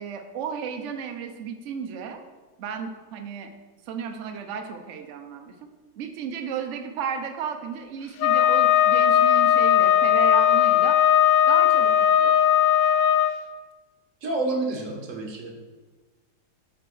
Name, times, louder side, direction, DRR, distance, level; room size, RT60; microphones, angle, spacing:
voice 1, 0.0-2.2 2.6-3.5 3.9-5.6 6.0-11.0 11.5-12.4, right 7 dB, 85° right, 5 dB, 0.6 m, -33 dB
Wind instrument woodwind instrument, 8.2-13.3, left 10 dB, 80° left, 1.3 m, -18 dB
voice 2, 14.2-15.7, right 2 dB, 45° right, 1 dB, 1.4 m, -29 dB
7.6 x 4.2 x 6.0 m, 1.3 s
omnidirectional pair, 2.0 m